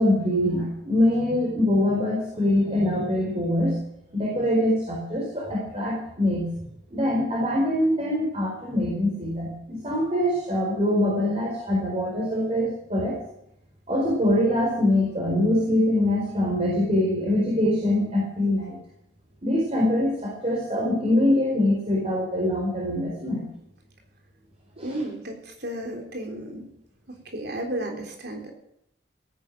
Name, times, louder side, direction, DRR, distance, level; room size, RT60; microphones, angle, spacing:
voice 1, 0.0-3.8 4.1-6.5 6.9-13.2 13.9-18.8 19.4-23.5 24.8-25.0, left 1 dB, 35° right, -4 dB, 4.7 m, -24 dB
voice 2, 24.8-26.7 27.3-28.5, right 1 dB, 60° right, 2 dB, 3.6 m, -33 dB
17.0 x 10.0 x 7.6 m, 0.78 s
head